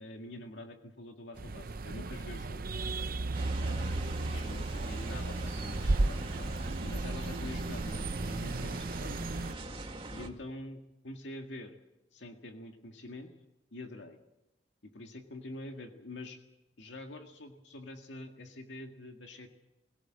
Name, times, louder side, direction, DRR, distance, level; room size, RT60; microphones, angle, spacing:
voice 1, 0.0-2.7 3.6-9.2 10.1-11.8 12.1-13.3 13.7-14.2 14.8-16.4 16.8-19.5, left 1 dB, 80° left, 4 dB, 1.9 m, -46 dB
sound 1, 1.4-9.5, right 2 dB, 55° right, 0.7 m, -34 dB
sound 2, 3.3-10.3, right 1 dB, 30° right, 2.2 m, -41 dB
22.0 x 17.0 x 7.6 m, 0.93 s
head